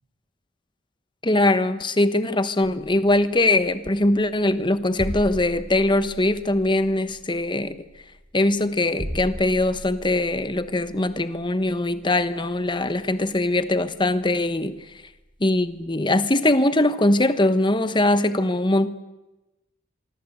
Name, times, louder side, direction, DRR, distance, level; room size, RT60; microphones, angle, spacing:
voice 1, 1.2-7.8 8.3-14.8 15.4-18.9, left 2 dB, 25° left, 12 dB, 1.2 m, -21 dB
sound 1, 3.0-16.0, equal, 35° right, 3.5 m, -40 dB
25.0 x 24.0 x 8.1 m, 1.0 s
head